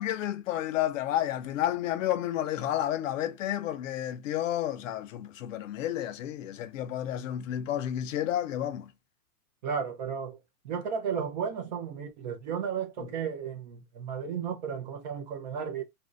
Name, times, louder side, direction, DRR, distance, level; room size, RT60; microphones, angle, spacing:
voice 1, 0.0-8.9, left 12 dB, 60° left, 0.6 m, -31 dB
voice 2, 9.6-10.4 10.6-15.8, right 7 dB, 30° right, 0.4 m, -34 dB
2.6 x 2.1 x 3.6 m
hypercardioid pair, 145°, 45 cm